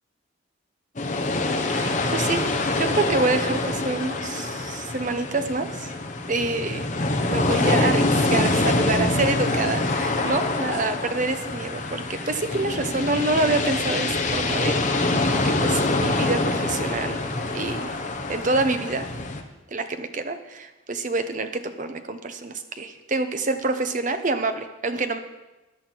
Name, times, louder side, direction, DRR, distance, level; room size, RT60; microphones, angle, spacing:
Felixstowe beach waves close stones seagulls stereo, 1.0-19.4, left 2 dB, 35° left, 1.0 m, -25 dB
voice 1, 1.7-2.4 2.8-5.9 6.3-6.9 7.3-17.2 17.5-17.9 18.3-19.1 19.7-25.2, right 3 dB, 35° right, 8 dB, 0.8 m, -27 dB
14.0 x 10.5 x 4.5 m, 1.1 s
head